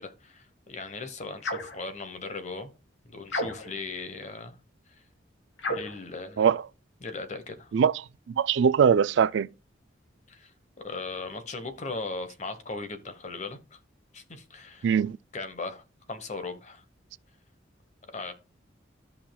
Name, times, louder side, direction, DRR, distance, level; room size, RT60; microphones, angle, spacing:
voice 1, 0.0-2.7 3.0-4.6 4.9-5.0 5.7-6.5 7.0-7.7 10.3-10.5 10.8-13.8 14.1-14.9 15.3-16.8 18.1-18.3, left 3 dB, 35° left, 1.1 m, -38 dB
sound 1, 1.4-1.8 3.3-3.9 5.6-6.0, left 1 dB, 80° left, 2.1 m, -32 dB
voice 2, 8.3-9.5 14.8-15.2, right 7 dB, 70° right, 0.3 m, -21 dB
14.0 x 5.7 x 2.3 m
head